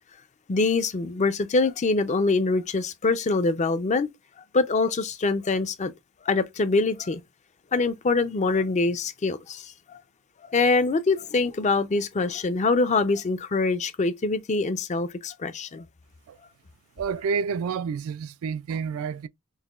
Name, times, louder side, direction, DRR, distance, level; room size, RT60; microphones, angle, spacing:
voice 1, 0.5-4.1 4.5-5.9 6.3-7.2 7.7-10.0 10.5-15.9, left 3 dB, 35° left, 0.4 m, -24 dB
voice 2, 17.0-19.3, right 6 dB, 70° right, 0.3 m, -29 dB
5.5 x 2.1 x 2.3 m
head